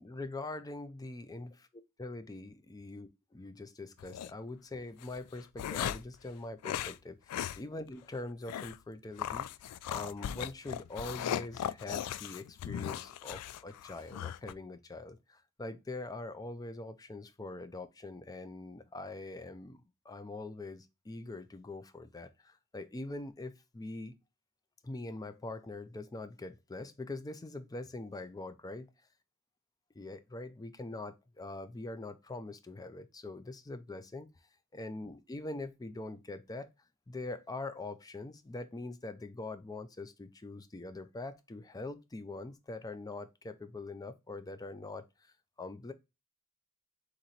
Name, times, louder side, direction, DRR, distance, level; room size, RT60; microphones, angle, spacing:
voice 1, 0.0-1.7 2.0-9.5 9.9-19.8 20.1-24.2 24.8-28.9 29.9-34.3 34.7-36.7 37.1-45.9, left 2 dB, 15° left, 0.4 m, -43 dB
sound 1, 4.0-4.3 5.0-6.2 6.6-7.0 7.3-7.6 7.9-8.0 8.5-8.8 9.2-14.5, left 10 dB, 85° left, 0.3 m, -38 dB
3.8 x 3.0 x 4.0 m
head